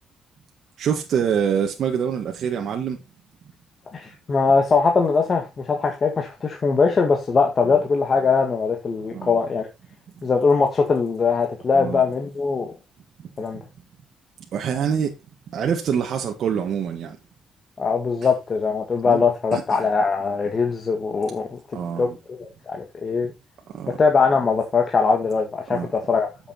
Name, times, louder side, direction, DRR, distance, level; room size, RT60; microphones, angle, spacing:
voice 1, 0.8-3.0 9.1-9.3 11.7-12.0 13.2-13.3 14.5-15.1 15.5-17.2 19.0-19.2 19.5-19.6 21.7-22.2 23.7-24.0 25.7-25.9, right 7 dB, 65° right, 1.6 m, -25 dB
voice 2, 3.9-9.7 10.2-12.7 13.4-13.6 17.8-21.6 22.0-23.3 24.0-26.3, left 5 dB, 40° left, 1.9 m, -21 dB
8.1 x 7.1 x 4.3 m
cardioid pair, 90°, 0 cm